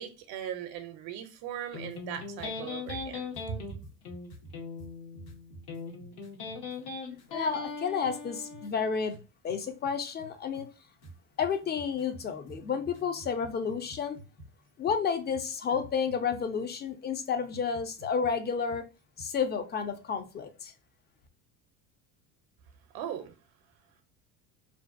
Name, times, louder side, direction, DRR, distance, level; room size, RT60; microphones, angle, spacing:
voice 1, 0.0-3.6 22.9-23.3, right 9 dB, 65° right, 0.5 m, -39 dB
Electric guitar, 1.7-8.7, left 4 dB, 70° left, 1.0 m, -40 dB
sound 1, 1.8-6.8 7.1-7.7 8.0-16.6 17.5-19.3, right 2 dB, 50° left, 1.4 m, -51 dB
voice 2, 7.1-9.2 9.4-10.7 11.4-14.2 14.8-18.8 19.2-20.7, left 6 dB, 25° left, 0.4 m, -31 dB
2.5 x 2.2 x 2.4 m
supercardioid pair, 95°, 40 cm